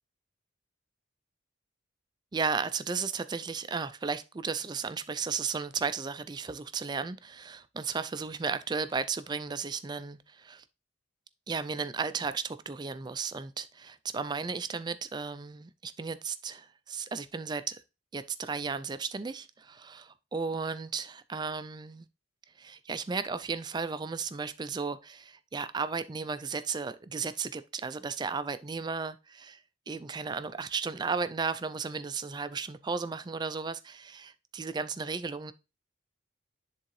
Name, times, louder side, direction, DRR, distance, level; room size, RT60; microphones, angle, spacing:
voice 1, 2.3-10.6 11.5-17.8 18.1-22.1 22.6-29.6 29.9-35.5, right 5 dB, 20° right, 0.3 m, -34 dB
10.0 x 3.7 x 3.1 m
head